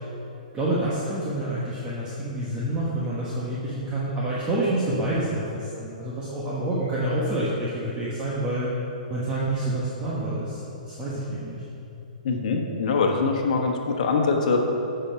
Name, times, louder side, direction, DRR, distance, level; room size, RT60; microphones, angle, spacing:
voice 1, 0.5-8.7 9.1-11.6, right 1 dB, 15° right, -8 dB, 1.3 m, -28 dB
voice 2, 12.2-14.6, left 4 dB, 60° left, 2 dB, 1.3 m, -23 dB
8.1 x 5.6 x 5.8 m, 2.8 s
hypercardioid pair, 145°, 5 cm